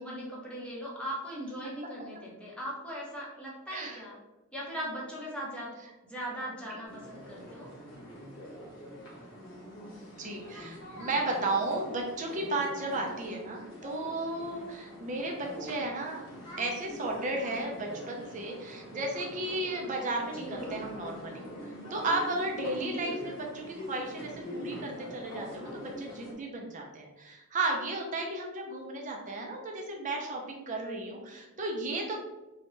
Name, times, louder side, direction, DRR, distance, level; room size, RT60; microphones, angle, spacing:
voice 1, 0.0-4.2 4.5-5.7 6.0-7.7 20.3-20.8 22.7-23.1, equal, 5° left, -5 dB, 0.7 m, -39 dB
voice 2, 3.7-4.0 10.2-16.2 16.6-21.4 21.9-32.1, right 2 dB, 35° right, 1 dB, 0.4 m, -34 dB
sound 1, 6.8-26.3, equal, 60° left, 1.0 m, -44 dB
2.7 x 2.1 x 3.0 m, 1.0 s
head